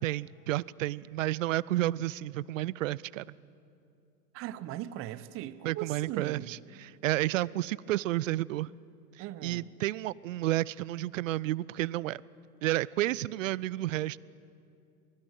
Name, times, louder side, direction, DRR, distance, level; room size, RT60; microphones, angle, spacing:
voice 1, 0.0-3.3 5.6-8.7 9.4-12.2 12.6-14.2, right 16 dB, 55° right, 0.6 m, -31 dB
voice 2, 4.3-6.6 9.2-9.7, right 13 dB, 30° right, 0.8 m, -39 dB
25.0 x 19.5 x 9.2 m
figure-of-eight pair, 95°, 47 cm